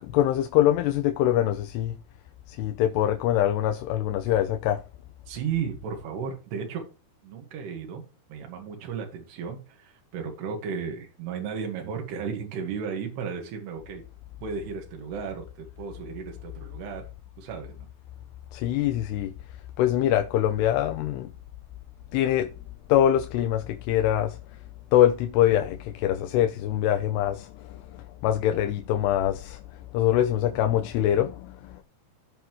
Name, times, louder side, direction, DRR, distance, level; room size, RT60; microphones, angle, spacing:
voice 1, 0.0-2.0 2.5-4.8 18.5-21.3 22.1-22.5 22.9-24.6 24.9-31.8, left 11 dB, 90° left, 2.8 m, -24 dB
voice 2, 5.3-6.8 7.2-8.0 8.3-14.0 14.4-17.1 17.4-17.9, right 6 dB, 80° right, 3.7 m, -34 dB
16.5 x 5.6 x 3.1 m
omnidirectional pair, 4.7 m